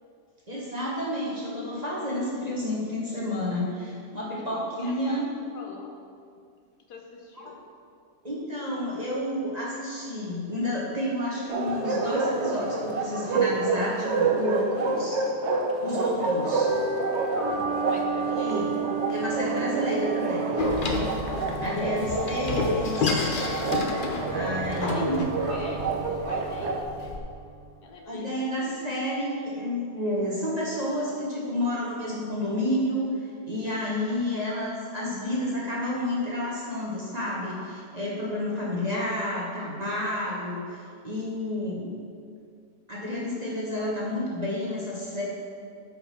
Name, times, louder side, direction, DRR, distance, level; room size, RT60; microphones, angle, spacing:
voice 1, 0.5-5.2 8.2-15.2 15.8-16.7 18.2-18.7 19.1-20.6 21.6-23.3 24.3-25.3 28.1-33.2 33.5-41.9 42.9-45.2, left 1 dB, 25° right, -5 dB, 1.3 m, -30 dB
voice 2, 4.4-6.0 6.9-7.6 17.8-18.9 21.8-22.4 24.9-27.2 27.8-28.7 34.1-34.4, left 3 dB, 70° left, 2 dB, 1.3 m, -44 dB
Bark, 11.5-26.8, right 3 dB, 55° right, 0.9 m, -28 dB
sound 1, 16.6-27.6, right 5 dB, 30° left, 1.9 m, -34 dB
Door, 20.6-27.2, left 3 dB, 50° left, 0.6 m, -30 dB
8.7 x 5.2 x 6.0 m, 2.3 s
omnidirectional pair, 1.9 m